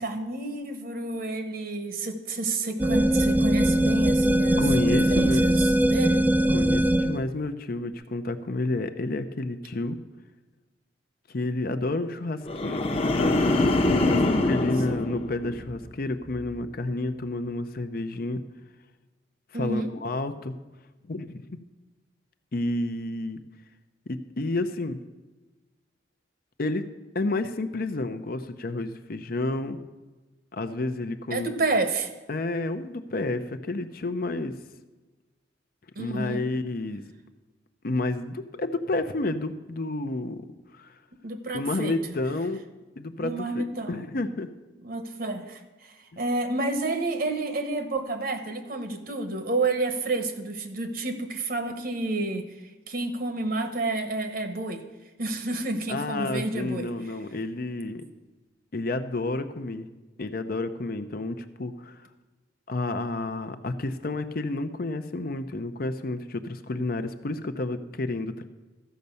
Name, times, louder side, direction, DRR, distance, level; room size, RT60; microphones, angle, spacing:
voice 1, 0.0-6.2 13.9-14.5 14.9-15.0 19.5-19.9 31.3-32.1 35.9-36.4 41.2-42.0 43.2-44.0 44.8-54.8 55.2-56.9, right 2 dB, 55° right, 8 dB, 1.1 m, -30 dB
sound 1, 2.8-7.2, right 1 dB, 10° right, 0.3 m, -21 dB
voice 2, 4.6-5.4 6.5-10.0 11.3-14.2 14.5-18.4 19.5-20.5 21.1-21.6 22.5-23.4 24.1-25.0 26.6-26.9 27.1-29.8 30.5-31.6 32.3-34.5 36.0-37.0 37.8-40.4 40.7-40.9 41.5-42.6 43.0-44.5 55.9-58.0 58.7-59.9 60.2-62.0 62.7-68.4, left 2 dB, 55° left, 9 dB, 0.7 m, -30 dB
sound 2, 12.4-15.9 16.3-16.7, left 2 dB, 35° left, 0.9 m, -25 dB
13.5 x 5.3 x 6.9 m, 1.2 s
head